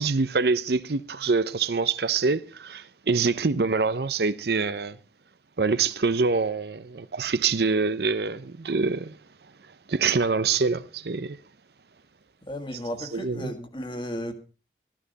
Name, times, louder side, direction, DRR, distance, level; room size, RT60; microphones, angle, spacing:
voice 1, 0.0-5.0 5.6-9.2 9.9-11.4 13.1-13.5, right 4 dB, 65° right, 0.7 m, -25 dB
voice 2, 12.4-14.3, equal, 25° left, 1.9 m, -34 dB
14.0 x 14.0 x 4.0 m
head